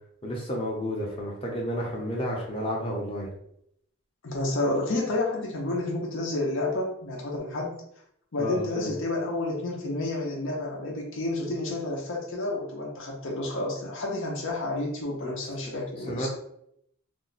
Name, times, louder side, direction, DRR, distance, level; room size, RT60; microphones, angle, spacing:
voice 1, 0.2-3.3 8.4-8.9 15.2-15.3 15.6-15.7 16.1-16.3, equal, 25° left, -3 dB, 0.7 m, -31 dB
voice 2, 4.2-7.8 8.3-16.3, left 2 dB, 55° left, -2 dB, 0.6 m, -30 dB
2.6 x 2.2 x 4.0 m, 0.72 s
head